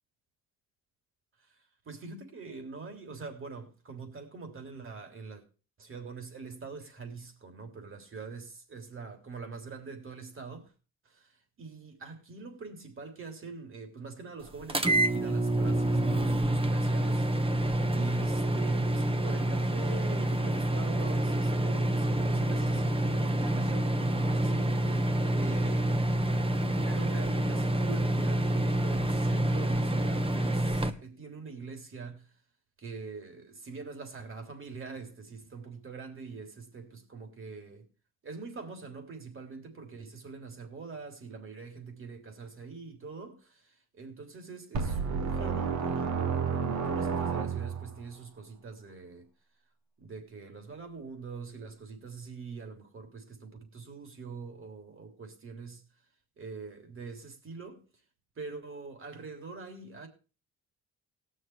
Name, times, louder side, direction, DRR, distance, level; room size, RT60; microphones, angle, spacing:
voice 1, 1.4-5.4 5.8-10.7 11.0-17.7 17.9-25.0 25.3-26.0 26.9-32.3 32.8-37.8 38.2-49.3 50.0-55.9 56.4-57.8 58.3-60.1, right 4 dB, 45° right, 3.4 m, -44 dB
sound 1, 14.7-30.9, right 1 dB, 20° right, 1.2 m, -27 dB
sound 2, 44.7-48.0, right 6 dB, 70° right, 1.7 m, -30 dB
18.0 x 6.5 x 4.6 m
cardioid pair, 90°, 30 cm